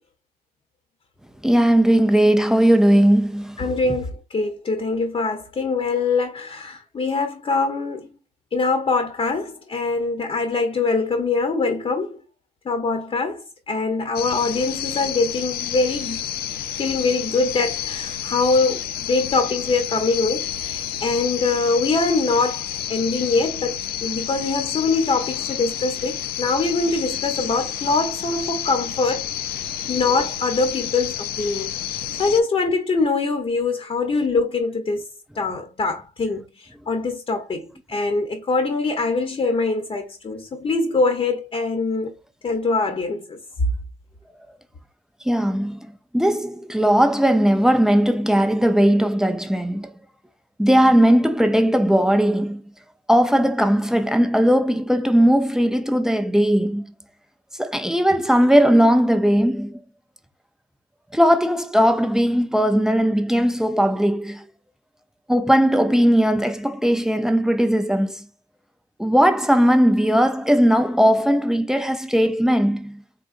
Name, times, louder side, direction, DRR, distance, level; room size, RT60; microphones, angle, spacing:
voice 1, 1.4-3.7 45.3-45.8 46.1-49.9 50.6-52.6 53.1-56.9 57.6-59.8 61.1-64.4 65.3-68.2 69.0-73.0, equal, 5° right, 0.4 m, -18 dB
voice 2, 3.6-8.0 8.5-12.2 12.6-13.4 13.7-16.2 16.8-22.6 22.9-23.7 24.0-29.3 29.9-31.7 32.2-35.1 35.3-42.1 42.4-43.4, left 3 dB, 30° left, 0.8 m, -23 dB
sound 1, 14.1-32.4, left 11 dB, 65° left, 0.5 m, -30 dB
3.7 x 3.6 x 2.5 m
cardioid pair, 110°, 17 cm